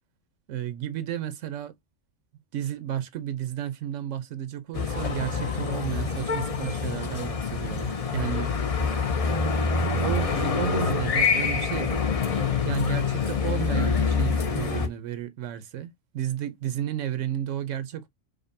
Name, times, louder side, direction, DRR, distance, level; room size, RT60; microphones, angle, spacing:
voice 1, 0.5-1.7 2.5-8.6 10.0-12.0 12.6-18.1, right 11 dB, 85° right, 1.0 m, -32 dB
sound 1, 4.7-14.9, left 5 dB, 40° left, 0.6 m, -26 dB
5.0 x 2.2 x 2.6 m
omnidirectional pair, 1.3 m